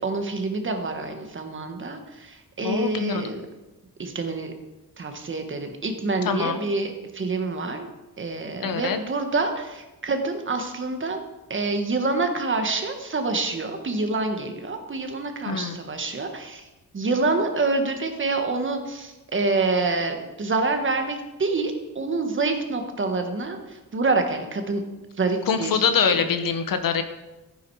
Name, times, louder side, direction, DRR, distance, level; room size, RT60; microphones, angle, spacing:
voice 1, 0.0-3.4 4.0-4.5 5.0-7.9 8.2-11.2 11.5-16.6 16.9-23.6 23.9-24.8 25.2-25.8 26.1-26.2, right 3 dB, 35° right, 5 dB, 1.4 m, -27 dB
voice 2, 2.6-3.2 6.2-6.6 8.6-9.0 15.5-15.8 25.5-27.0, left 6 dB, 65° left, 9 dB, 1.2 m, -24 dB
14.5 x 9.9 x 4.8 m, 1.1 s
wide cardioid pair, 180°, 36 cm